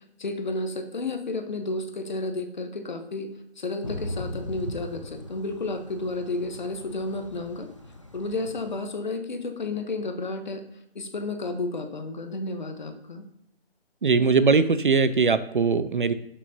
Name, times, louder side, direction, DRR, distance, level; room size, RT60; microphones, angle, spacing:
voice 1, 0.2-3.3 3.6-7.7 8.1-10.6 10.9-13.2, left 2 dB, 45° left, 7 dB, 1.0 m, -32 dB
Thunder / Rain, 3.8-8.8, equal, 30° left, 0.4 m, -39 dB
voice 2, 14.0-16.1, right 4 dB, 55° right, 13 dB, 0.5 m, -21 dB
12.5 x 6.2 x 2.7 m, 0.82 s
hypercardioid pair, 175°, 31 cm